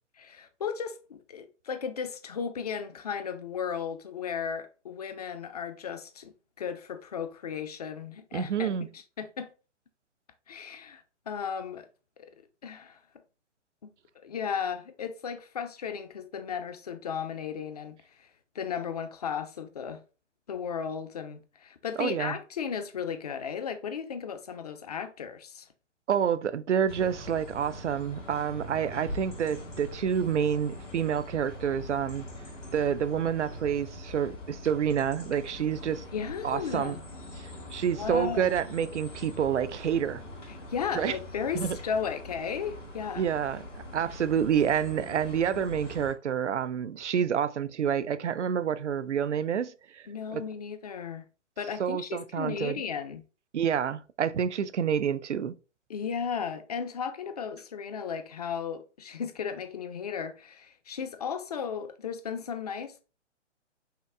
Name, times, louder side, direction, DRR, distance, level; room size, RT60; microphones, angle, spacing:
voice 1, 0.2-9.5 10.5-11.9 12.2-12.3 12.6-13.0 13.8-13.9 14.2-18.3 18.5-20.0 20.5-25.7 36.1-37.0 37.9-38.6 40.5-43.3 50.1-51.3 51.6-53.2 55.9-63.0, left 7 dB, 35° left, 0.5 m, -35 dB
voice 2, 8.3-8.9 22.0-22.4 26.1-32.3 32.7-36.0 36.4-37.0 37.4-40.2 40.9-41.2 41.5-41.8 43.2-43.6 43.9-50.0 50.3-50.4 51.8-52.8 53.5-55.5, right 8 dB, 70° right, 0.5 m, -28 dB
sound 1, 26.9-46.1, left 1 dB, 75° left, 1.7 m, -43 dB
5.7 x 2.3 x 3.5 m
figure-of-eight pair, 125°, 37 cm